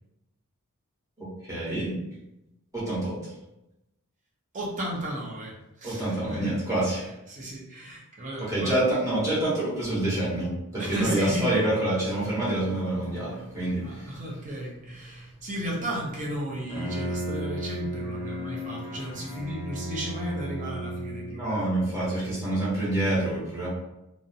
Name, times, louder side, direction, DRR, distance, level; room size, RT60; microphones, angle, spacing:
voice 1, 1.2-1.9 2.7-3.2 5.8-7.0 8.4-14.1 21.4-23.7, right 1 dB, 15° right, -9 dB, 0.9 m, -27 dB
voice 2, 4.5-6.6 6.9-8.8 10.8-11.6 13.8-21.9, equal, 35° right, -3 dB, 0.6 m, -34 dB
Bowed string instrument, 16.5-21.6, equal, 25° left, 0.6 m, -34 dB
2.4 x 2.1 x 2.7 m, 0.93 s
head